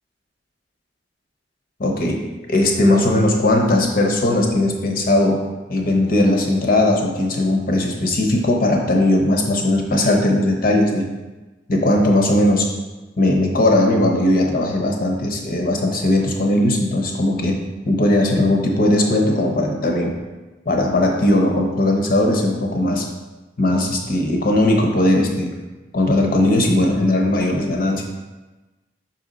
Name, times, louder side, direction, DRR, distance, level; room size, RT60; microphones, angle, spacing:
voice 1, 1.8-5.4 5.7-11.1 11.7-12.7 13.2-17.6 17.8-20.1 20.7-23.1 23.6-25.5 25.9-28.0, left 1 dB, 50° left, 1 dB, 0.9 m, -18 dB
5.7 x 4.3 x 3.9 m, 1.2 s
head